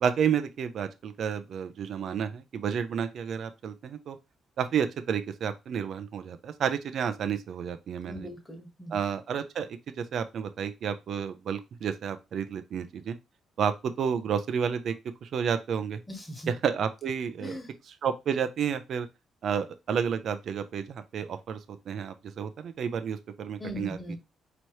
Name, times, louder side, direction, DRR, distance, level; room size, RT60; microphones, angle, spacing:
voice 1, 0.0-4.2 4.6-8.3 8.9-13.2 13.6-15.0 15.2-16.0 16.5-17.6 17.8-19.1 19.4-24.2, right 7 dB, 65° right, 0.5 m, -31 dB
voice 2, 8.1-9.0 16.1-16.5 17.4-17.7 23.6-24.2, equal, 15° left, 1.4 m, -39 dB
4.3 x 3.0 x 3.1 m
cardioid pair, 90°, 0 cm